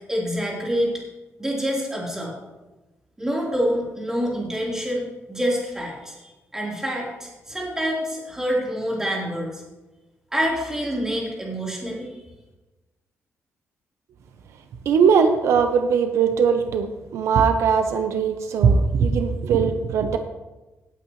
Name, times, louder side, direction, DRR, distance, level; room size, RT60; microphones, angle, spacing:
voice 1, 0.1-0.9 1.4-2.3 3.2-6.1 6.5-9.6 10.3-12.2, equal, 10° right, -4 dB, 3.8 m, -26 dB
voice 2, 14.9-20.2, right 6 dB, 80° right, 7 dB, 0.8 m, -20 dB
17.5 x 8.7 x 3.2 m, 1.1 s
cardioid pair, 130°, 5 cm